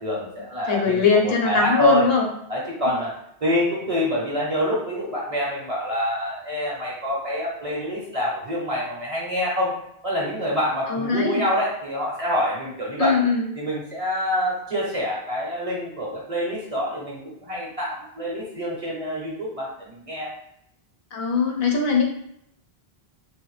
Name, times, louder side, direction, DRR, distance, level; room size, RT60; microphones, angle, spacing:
voice 1, 0.0-2.1 2.5-3.1 3.4-9.8 10.0-13.2 13.6-20.3, left 1 dB, 40° right, -4 dB, 0.7 m, -26 dB
voice 2, 0.7-2.3 2.9-3.0 10.9-11.4 13.0-13.5 21.1-22.0, left 5 dB, 70° left, 1 dB, 0.8 m, -21 dB
3.1 x 2.1 x 3.1 m, 0.74 s
omnidirectional pair, 1.1 m